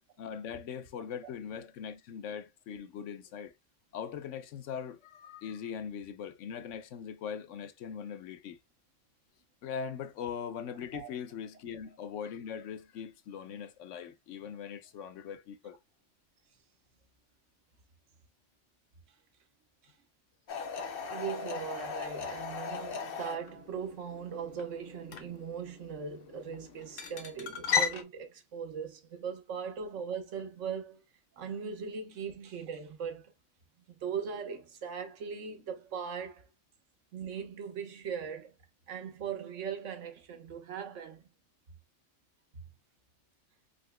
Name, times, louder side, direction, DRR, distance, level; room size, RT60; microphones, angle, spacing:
voice 1, 0.2-3.5 3.9-8.6 9.6-15.8, left 7 dB, 80° left, 0.9 m, -41 dB
sound 1, 20.5-28.0, left 6 dB, 55° left, 0.8 m, -37 dB
voice 2, 21.0-31.0 31.4-33.3 34.0-36.5 37.1-38.5 38.9-41.2, right 7 dB, 85° right, 1.2 m, -39 dB
3.8 x 2.9 x 2.2 m
omnidirectional pair, 1.3 m